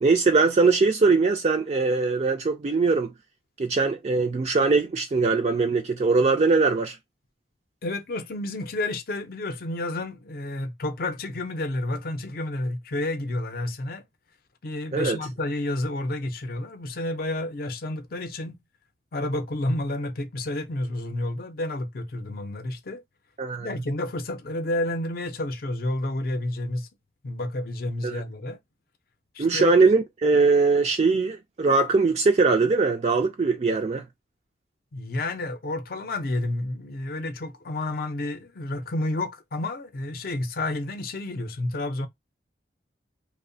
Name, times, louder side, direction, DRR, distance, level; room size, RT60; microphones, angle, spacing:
voice 1, 0.0-3.1 3.6-7.0 14.9-15.2 23.4-23.7 28.0-28.2 29.4-34.1, right 4 dB, 35° right, 0.3 m, -21 dB
voice 2, 7.8-14.0 14.6-18.6 19.1-23.0 23.6-26.9 27.2-28.6 29.3-29.8 34.9-42.1, left 1 dB, 55° left, 0.5 m, -30 dB
2.7 x 2.1 x 2.6 m
head